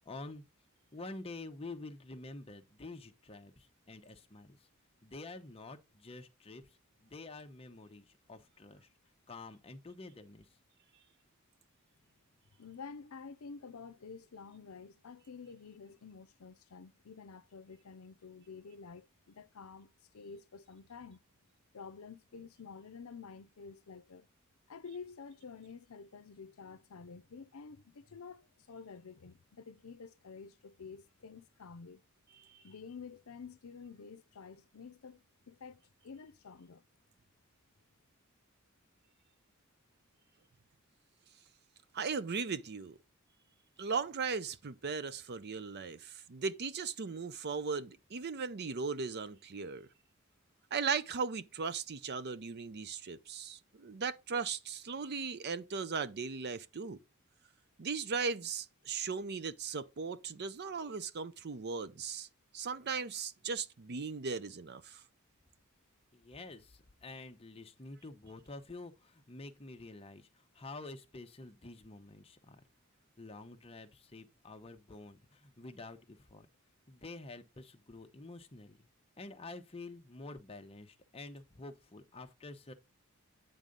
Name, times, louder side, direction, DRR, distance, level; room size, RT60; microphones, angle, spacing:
voice 1, 0.1-0.4 0.9-4.6 5.0-6.6 7.0-8.9 9.3-10.4 66.1-70.3 70.5-72.6 73.2-76.5 76.9-78.8 79.2-82.7, left 2 dB, 25° left, 0.9 m, -48 dB
voice 2, 12.6-21.2 21.7-24.3 24.7-32.0 32.6-36.8, left 5 dB, 85° left, 0.6 m, -50 dB
voice 3, 41.9-43.0 43.8-49.9 50.7-57.0 57.8-62.3 62.5-65.0, right 5 dB, 50° right, 0.6 m, -37 dB
9.1 x 3.7 x 5.2 m
head